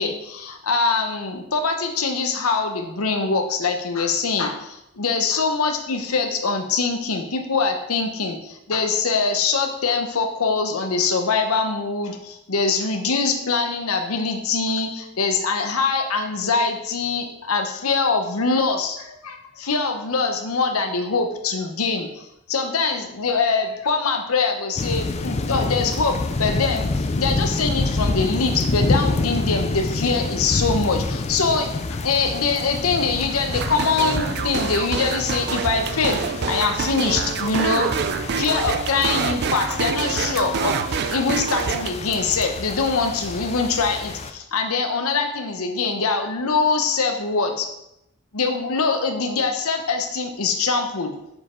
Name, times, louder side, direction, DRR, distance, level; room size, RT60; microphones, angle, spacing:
voice 1, 0.0-37.9 38.4-40.8 41.1-47.7 48.3-51.1, left 4 dB, 85° left, 5 dB, 0.9 m, -23 dB
sound 1, 24.8-44.3, left 3 dB, 30° left, 0.4 m, -28 dB
sound 2, 33.5-41.9, right 6 dB, 50° right, 0.3 m, -26 dB
6.8 x 4.8 x 4.4 m, 0.82 s
head